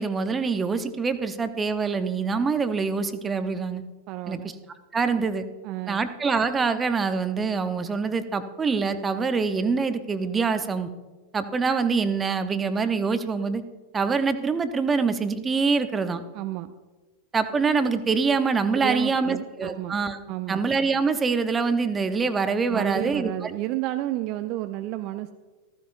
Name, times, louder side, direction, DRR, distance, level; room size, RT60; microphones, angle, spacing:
voice 1, 0.0-3.8 4.3-4.4 4.9-5.4 5.9-10.9 11.3-13.6 13.9-16.2 17.3-20.2 20.5-23.5, right 4 dB, 15° right, 10 dB, 0.8 m, -25 dB
voice 2, 4.1-4.5 5.2-5.3 5.6-6.0 16.3-16.7 18.7-20.0 20.3-20.6 22.7-25.3, right 15 dB, 40° right, 9 dB, 0.4 m, -31 dB
15.0 x 14.5 x 2.6 m, 1.3 s
figure-of-eight pair, 90°, 0 cm